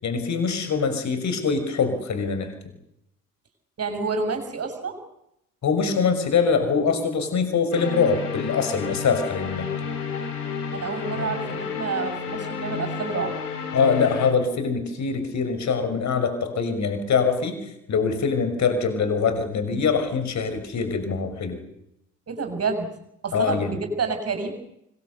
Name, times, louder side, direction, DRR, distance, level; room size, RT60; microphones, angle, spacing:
voice 1, 0.0-2.5 5.6-9.7 13.7-17.6 17.9-21.6 23.3-23.7, left 5 dB, 35° left, 8 dB, 6.1 m, -23 dB
voice 2, 3.8-5.0 10.7-13.3 22.3-22.9 23.2-24.5, right 4 dB, 30° right, 7 dB, 6.8 m, -28 dB
sound 1, 7.7-14.3, left 6 dB, 75° left, 4.0 m, -31 dB
25.5 x 21.0 x 8.2 m, 0.78 s
figure-of-eight pair, 60°, 45 cm